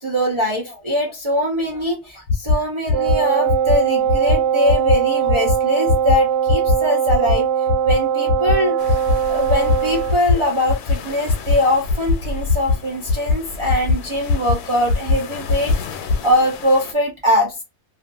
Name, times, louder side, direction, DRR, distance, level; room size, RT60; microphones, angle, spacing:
voice 1, 0.0-7.5 7.8-9.0 9.3-17.6, left 1 dB, 50° right, -2 dB, 0.3 m, -22 dB
sound 1, 2.3-2.5 2.9-3.1 3.5-3.7 4.1-4.3 4.7-4.9 5.3-5.5 5.9-6.1 6.5-6.7 7.1-7.3 7.7-7.9 8.3-8.5 8.9-9.1 9.5-9.8 10.1-10.3 10.7-10.9 11.3-11.5 11.9-12.1 12.5-12.7 13.1-13.3 13.7-13.9 14.3-14.5 14.9-15.1 15.5-15.7 16.1-16.2, left 4 dB, 70° left, 0.9 m, -18 dB
Wind instrument woodwind instrument, 2.9-10.2, right 8 dB, 80° right, 1.1 m, -20 dB
sound 2, 8.8-16.9, left 4 dB, 85° left, 1.1 m, -35 dB
2.5 x 2.4 x 2.4 m, 0.24 s
omnidirectional pair, 1.6 m